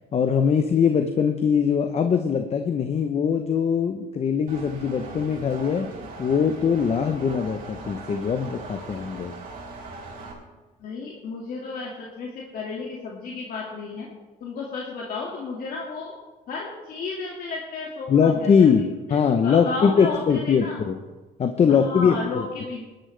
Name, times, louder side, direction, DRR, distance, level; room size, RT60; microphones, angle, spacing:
voice 1, 0.1-9.3 18.1-18.8 19.1-21.0 21.4-22.5, left 6 dB, 40° left, 7 dB, 0.9 m, -21 dB
Engine, 4.5-10.3, right 2 dB, 55° right, 4.4 m, -39 dB
voice 2, 10.8-14.1 14.4-16.1 16.5-18.7 19.1-19.2 19.4-20.8 21.7-22.8, left 4 dB, 60° left, -2 dB, 2.2 m, -33 dB
18.5 x 12.0 x 3.4 m, 1.2 s
cardioid pair, 110°, 17 cm